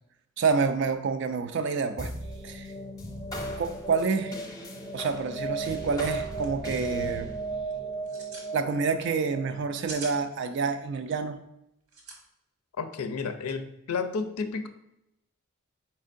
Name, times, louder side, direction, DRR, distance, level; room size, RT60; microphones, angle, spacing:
voice 1, 0.4-2.1 2.4-2.7 3.6-4.4 4.9-7.3 8.5-11.4, right 5 dB, 55° right, 8 dB, 0.3 m, -28 dB
sound 1, 2.0-10.7, right 2 dB, 15° left, 0.7 m, -36 dB
sound 2, 6.3-6.5 6.8-7.1 7.9-8.5 9.6-10.2 11.9-12.2, right 3 dB, 90° right, 1.2 m, -41 dB
voice 2, 12.8-14.7, left 5 dB, 85° left, 8 dB, 0.5 m, -31 dB
4.4 x 4.4 x 2.5 m, 0.82 s
head